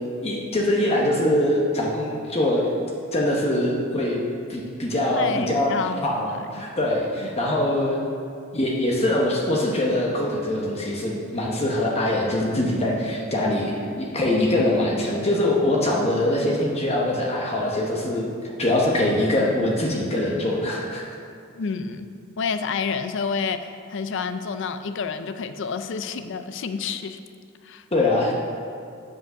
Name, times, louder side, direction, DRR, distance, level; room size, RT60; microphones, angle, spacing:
voice 1, 0.2-2.7 3.1-4.2 4.5-5.7 6.0-8.0 8.5-18.3 18.6-21.1 27.9-28.3, left 1 dB, 30° left, -2 dB, 1.0 m, -23 dB
voice 2, 5.1-6.0 6.3-6.6 21.6-22.1 22.4-27.2 27.6-27.8, left 5 dB, 60° left, 10 dB, 0.4 m, -29 dB
7.9 x 5.4 x 6.5 m, 2.4 s
head